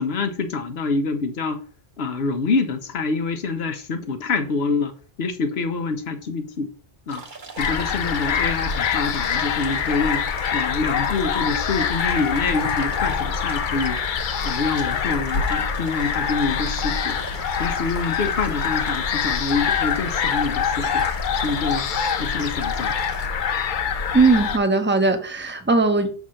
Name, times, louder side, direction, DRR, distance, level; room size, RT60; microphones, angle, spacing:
voice 1, 0.0-1.6 2.0-4.9 5.2-6.7 7.1-7.2 7.6-10.2 10.5-14.0 14.4-17.2 17.6-21.0 21.4-21.8 22.2-22.9, left 4 dB, 85° left, 1.1 m, -26 dB
sound 1, 7.1-23.3, right 3 dB, 50° right, 1.2 m, -40 dB
sound 2, 7.6-24.6, left 7 dB, 60° left, 0.7 m, -25 dB
voice 2, 24.1-26.1, right 3 dB, 15° right, 0.6 m, -19 dB
6.3 x 3.6 x 5.6 m
omnidirectional pair, 1.0 m